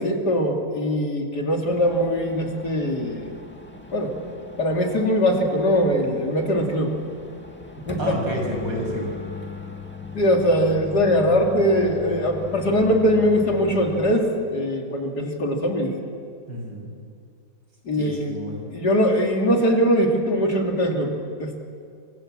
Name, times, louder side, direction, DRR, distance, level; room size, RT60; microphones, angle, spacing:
voice 1, 0.0-3.3 3.9-4.1 4.6-7.0 7.8-8.1 10.1-15.9 17.9-18.3 18.7-21.6, equal, 60° left, 2 dB, 3.3 m, -21 dB
sound 1, 1.7-14.2, left 4 dB, 5° left, 1.7 m, -39 dB
voice 2, 8.0-9.1 16.5-16.9 17.9-18.7, equal, 75° right, 0 dB, 6.9 m, -29 dB
26.0 x 25.5 x 7.5 m, 2.4 s
omnidirectional pair, 2.0 m